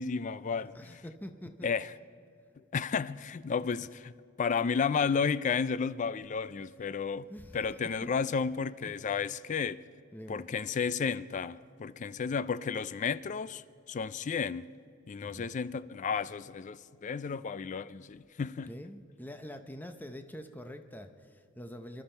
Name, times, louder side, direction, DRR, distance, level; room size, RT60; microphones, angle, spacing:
voice 1, 0.0-0.9 1.6-1.9 2.7-4.1 4.4-7.3 7.5-9.8 10.3-14.7 15.1-18.7, left 5 dB, 40° left, 0.4 m, -32 dB
voice 2, 0.7-1.7 7.3-7.7 8.0-8.3 10.1-10.5 15.2-15.5 18.7-22.0, equal, 10° left, 0.7 m, -45 dB
25.5 x 12.5 x 4.4 m
head